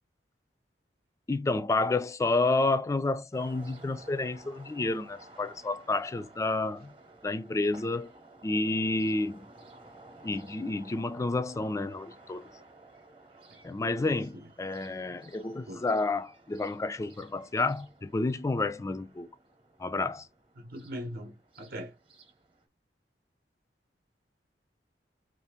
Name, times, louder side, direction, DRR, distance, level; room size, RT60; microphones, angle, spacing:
voice 1, 1.3-6.9 7.2-8.1 8.4-9.5 10.2-12.5 13.6-19.3 19.8-20.3, left 2 dB, 15° left, 0.3 m, -30 dB
sound 1, 3.3-22.6, right 2 dB, 30° right, 0.9 m, -55 dB
voice 2, 13.7-14.5 15.7-15.8 20.6-21.9, equal, 60° right, 0.8 m, -42 dB
2.6 x 2.4 x 3.6 m
head